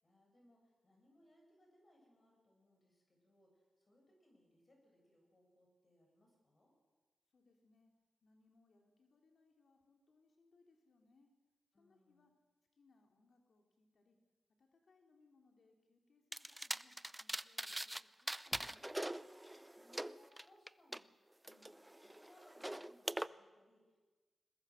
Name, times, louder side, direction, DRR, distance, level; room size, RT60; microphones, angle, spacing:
voice 1, 0.0-6.7 11.7-12.3 19.8-24.1, left 1 dB, 40° left, 0 dB, 7.8 m, -70 dB
voice 2, 7.3-7.9 8.2-11.3 11.8-12.3 12.7-14.2 14.6-19.2, left 3 dB, 70° left, 2 dB, 3.1 m, -72 dB
sound 1, 16.3-18.0 18.3-21.0 21.4-23.3, right 1 dB, 10° right, 0.6 m, -43 dB
22.0 x 20.0 x 6.4 m, 1.3 s
cardioid pair, 60°, 0 cm